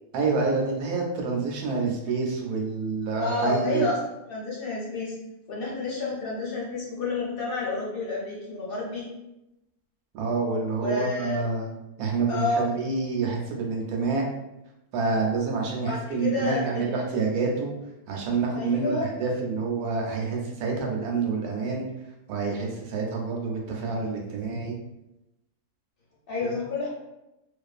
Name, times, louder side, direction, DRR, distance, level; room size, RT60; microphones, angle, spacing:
voice 1, 0.1-3.9 10.1-11.7 12.0-14.2 14.9-17.7 18.1-21.9 22.3-24.8 26.4-26.6, right 4 dB, 75° right, 0 dB, 1.0 m, -27 dB
voice 2, 3.2-4.0 4.3-5.2 5.5-9.1 10.8-11.4 12.3-12.8 15.8-16.9 18.5-19.1 26.3-26.9, left 3 dB, 50° left, -6 dB, 0.7 m, -29 dB
2.4 x 2.4 x 2.3 m, 0.92 s
omnidirectional pair, 1.6 m